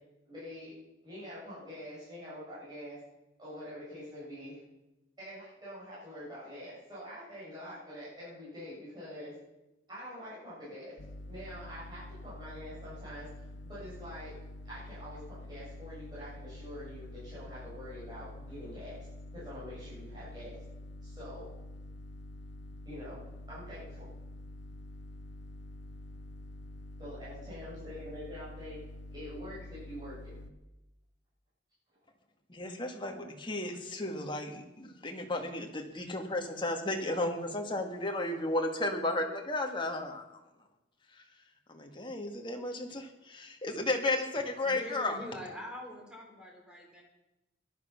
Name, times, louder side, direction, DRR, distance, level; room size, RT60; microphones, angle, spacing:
voice 1, 0.2-0.7 1.0-3.0 3.4-4.6 5.2-9.3 9.9-11.0 11.2-13.3 13.6-14.3 14.6-19.1 19.3-20.6 21.0-21.5 22.8-24.1 27.0-28.8 29.1-30.3 34.0-34.2, equal, 25° right, -11 dB, 8.0 m, -45 dB
sound 1, 11.0-30.5, left 1 dB, 70° left, 1.0 m, -47 dB
voice 2, 32.5-40.4 41.7-45.2, left 2 dB, 25° left, 3 dB, 2.0 m, -34 dB
voice 3, 44.6-47.0, equal, 5° right, 0 dB, 3.8 m, -44 dB
17.5 x 12.0 x 6.0 m, 0.98 s
head